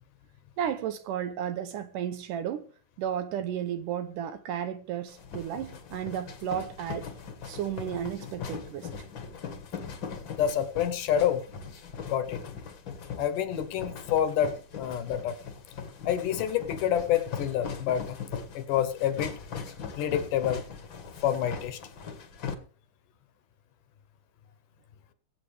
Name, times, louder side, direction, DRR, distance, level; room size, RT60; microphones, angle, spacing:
voice 1, 0.6-2.6 3.0-7.1 7.5-8.9, right 9 dB, 75° right, 2.1 m, -33 dB
sound 1, 5.1-22.5, left 6 dB, 50° left, 1.6 m, -40 dB
voice 2, 10.3-11.4 12.1-12.4 13.2-15.4 16.1-18.2 18.6-19.4 20.0-20.7 21.2-21.8, left 10 dB, 70° left, 2.3 m, -28 dB
23.0 x 8.3 x 3.4 m
omnidirectional pair, 4.2 m